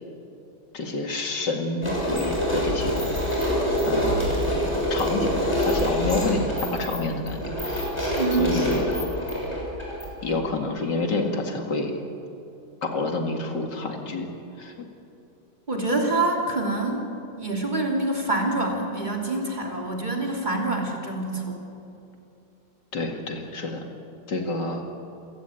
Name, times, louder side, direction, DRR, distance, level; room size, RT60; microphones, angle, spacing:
voice 1, 0.7-3.2 3.9-7.9 8.4-8.9 10.2-12.0 12.8-14.3 14.6-14.9 22.9-23.8 24.3-24.9, left 3 dB, 70° left, 3 dB, 2.8 m, -28 dB
sound 1, 1.8-10.3, equal, 15° left, 6.7 m, -26 dB
voice 2, 8.2-8.6 15.7-17.1 17.4-21.6, right 2 dB, 25° right, 1 dB, 3.1 m, -26 dB
28.5 x 16.0 x 9.0 m, 2.7 s
omnidirectional pair, 2.0 m